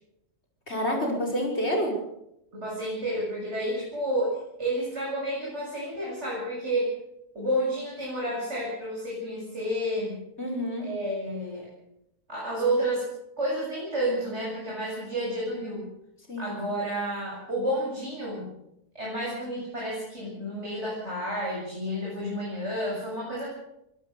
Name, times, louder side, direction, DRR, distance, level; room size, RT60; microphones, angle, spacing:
voice 1, 0.7-2.0 10.4-10.9 16.3-16.6, equal, 45° left, 0 dB, 5.6 m, -28 dB
voice 2, 2.5-6.9 7.3-10.2 10.8-11.7 12.3-13.0 13.4-15.9 16.4-18.5 18.9-23.5, right 1 dB, 45° right, -5 dB, 8.4 m, -30 dB
23.0 x 18.0 x 6.9 m, 0.84 s
omnidirectional pair, 1.6 m